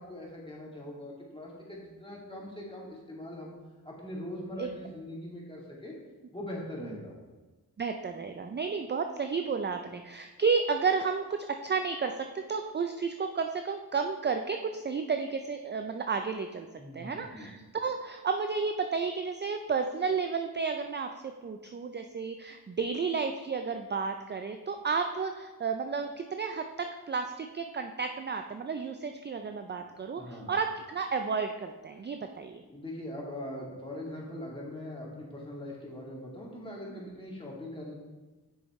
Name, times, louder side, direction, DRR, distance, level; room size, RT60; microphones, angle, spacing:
voice 1, 0.0-3.5 3.8-5.9 6.3-7.1 16.8-17.5 29.8-30.5 32.7-37.9, left 1 dB, 15° left, -4 dB, 2.4 m, -41 dB
voice 2, 7.8-16.7 16.9-32.6, right 5 dB, 30° right, 6 dB, 0.4 m, -32 dB
7.9 x 6.4 x 3.2 m, 1.2 s
cardioid pair, 65°, 38 cm